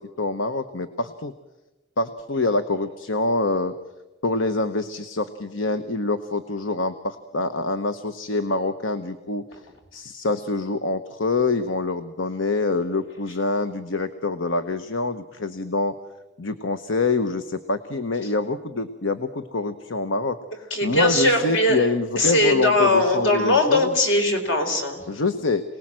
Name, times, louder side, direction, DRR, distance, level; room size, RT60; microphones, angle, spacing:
voice 1, 0.0-1.3 2.0-3.7 4.2-9.4 9.9-15.9 16.4-23.9 25.1-25.6, left 3 dB, 90° left, 10 dB, 1.0 m, -25 dB
voice 2, 20.7-21.9 22.2-25.0, left 1 dB, 70° left, 4 dB, 4.3 m, -20 dB
27.5 x 19.5 x 7.6 m, 1.1 s
head